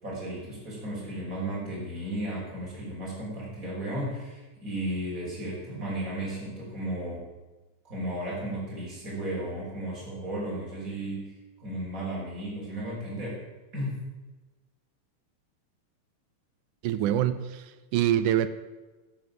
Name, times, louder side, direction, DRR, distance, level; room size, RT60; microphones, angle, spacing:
voice 1, 0.0-7.2 7.8-11.2 11.6-13.4 13.7-14.0, right 1 dB, 25° right, -5 dB, 6.2 m, -34 dB
voice 2, 16.8-18.5, right 11 dB, 80° right, 13 dB, 2.2 m, -25 dB
12.0 x 11.0 x 7.6 m, 1.2 s
omnidirectional pair, 3.7 m